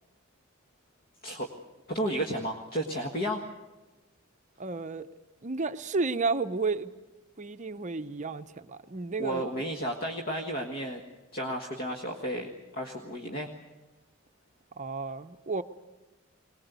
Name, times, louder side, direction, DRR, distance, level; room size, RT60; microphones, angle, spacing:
voice 1, 1.9-3.4 9.2-11.0 11.3-13.5, equal, 45° left, 2 dB, 1.6 m, -32 dB
voice 2, 4.6-5.1 5.4-6.9 7.4-9.4 14.8-15.6, right 3 dB, 35° right, 9 dB, 0.7 m, -32 dB
22.0 x 19.5 x 8.2 m, 1.1 s
head